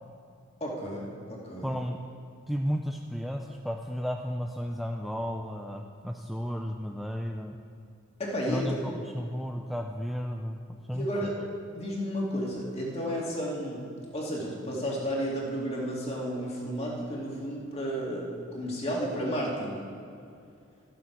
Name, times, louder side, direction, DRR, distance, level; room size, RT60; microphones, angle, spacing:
voice 1, 0.6-1.7 8.2-8.8 10.9-11.3 11.7-13.8 14.1-19.8, equal, 30° left, -3 dB, 2.4 m, -32 dB
voice 2, 1.6-2.0 2.5-7.6 8.5-11.3, equal, ahead, 2 dB, 0.4 m, -33 dB
13.5 x 7.7 x 6.0 m, 2.5 s
head